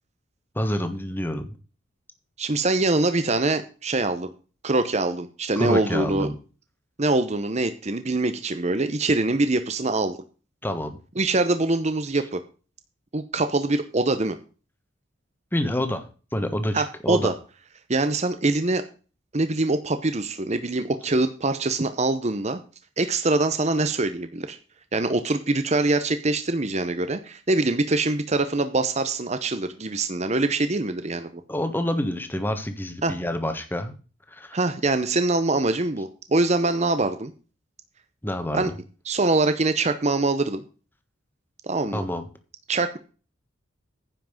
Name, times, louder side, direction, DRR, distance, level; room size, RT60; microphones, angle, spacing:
voice 1, 0.5-1.5 5.6-6.4 10.6-11.0 15.5-16.1 16.3-17.3 31.5-33.9 34.3-34.5 38.2-38.7 41.9-42.3, left 1 dB, 10° left, 8 dB, 1.4 m, -27 dB
voice 2, 2.4-4.3 4.6-6.3 7.0-10.2 11.2-12.4 13.1-14.4 16.7-17.3 17.9-18.8 19.3-22.6 23.0-24.6 24.9-31.4 33.0-33.1 34.5-37.3 38.5-38.7 39.0-40.6 41.6-42.1 42.7-43.0, right 2 dB, 35° right, 10 dB, 0.8 m, -24 dB
10.0 x 5.9 x 7.3 m, 0.36 s
head